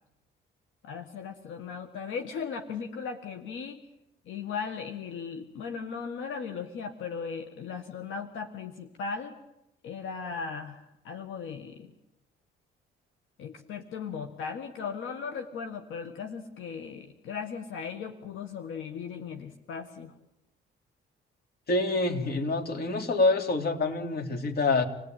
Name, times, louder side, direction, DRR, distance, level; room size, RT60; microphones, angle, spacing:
voice 1, 0.8-3.8 4.2-9.4 9.8-11.9 13.4-20.1, left 6 dB, 80° left, 6 dB, 1.7 m, -37 dB
voice 2, 21.7-24.9, left 3 dB, 50° left, 5 dB, 3.3 m, -26 dB
27.0 x 17.5 x 9.3 m, 0.88 s
cardioid pair, 90°, 20 cm